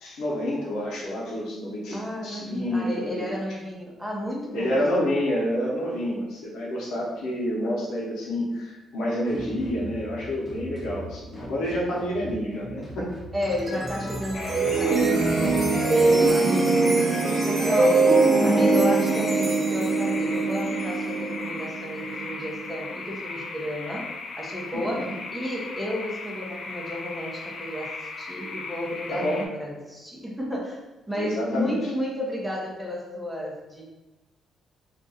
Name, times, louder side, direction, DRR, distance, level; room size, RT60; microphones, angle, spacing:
voice 1, 0.0-3.3 4.5-13.1 17.2-17.9 24.7-25.1 29.1-29.4 31.2-31.7, equal, 80° left, -5 dB, 0.8 m, -28 dB
voice 2, 1.9-5.1 11.9-12.1 13.3-16.8 17.4-18.1 18.4-24.1 24.4-25.1 25.3-30.8 31.1-33.8, equal, 5° right, -2 dB, 0.8 m, -32 dB
sound 1, 9.3-16.3, equal, 20° left, 1.1 m, -40 dB
sound 2, 13.4-22.7, right 3 dB, 35° right, 0.6 m, -22 dB
sound 3, 14.3-29.5, left 3 dB, 55° left, 0.4 m, -37 dB
2.5 x 2.3 x 3.9 m, 1.1 s
cardioid pair, 90°, 0 cm